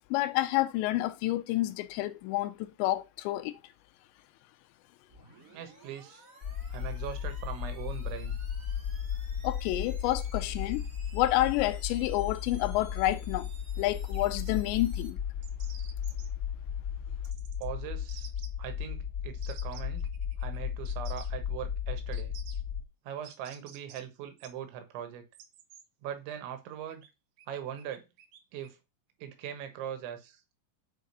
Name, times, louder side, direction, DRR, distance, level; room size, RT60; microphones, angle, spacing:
voice 1, 0.1-3.6 9.4-10.9 11.1-13.5 13.8-15.2, left 16 dB, 85° left, 2.9 m, -29 dB
sound 1, 5.1-15.1, right 3 dB, 45° right, 1.0 m, -56 dB
voice 2, 5.5-6.2 6.7-8.4 17.6-18.3 18.6-20.1 20.4-22.3 23.1-25.2 26.0-27.0 27.5-28.0 28.5-28.8 29.2-30.4, right 10 dB, 90° right, 3.6 m, -40 dB
sound 2, 6.4-22.8, left 8 dB, 65° left, 0.9 m, -35 dB
sound 3, 14.1-14.8 15.4-16.3 17.2-17.7 18.1-18.5 19.4-20.6 20.9-21.3 22.1-22.6 23.2-24.0 24.4-24.5 25.3-25.8 26.9-27.1 27.4-28.7, right 9 dB, 75° right, 2.0 m, -52 dB
7.5 x 4.8 x 5.4 m
omnidirectional pair, 5.1 m